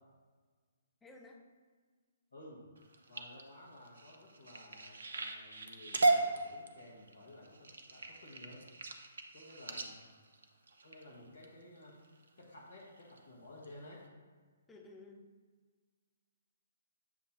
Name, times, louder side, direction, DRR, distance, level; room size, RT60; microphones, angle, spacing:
voice 1, 1.0-1.4 9.7-9.9 14.7-15.3, left 2 dB, 10° left, 1 dB, 0.6 m, -54 dB
voice 2, 2.3-2.6 3.1-8.6 9.3-10.0 10.8-11.9 12.4-14.0, left 1 dB, 65° left, -4 dB, 1.7 m, -54 dB
sound 1, 2.8-11.5 12.0-12.4 12.8-13.2 13.6-13.7 14.0-14.1, right 2 dB, 60° right, 0.6 m, -36 dB
7.4 x 2.7 x 5.7 m, 1.5 s
figure-of-eight pair, 130°, 0 cm